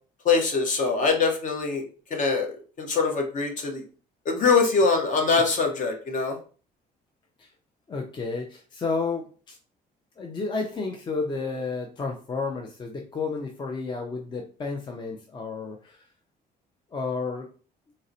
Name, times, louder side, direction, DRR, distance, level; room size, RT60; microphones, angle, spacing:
voice 1, 0.2-1.8 2.1-3.8 4.2-6.4, left 4 dB, 50° left, 3 dB, 0.9 m, -23 dB
voice 2, 7.9-9.6 10.2-16.0 16.9-17.5, left 4 dB, 25° left, 2 dB, 0.5 m, -31 dB
3.9 x 2.0 x 2.6 m, 0.38 s
cardioid pair, 110°, 17 cm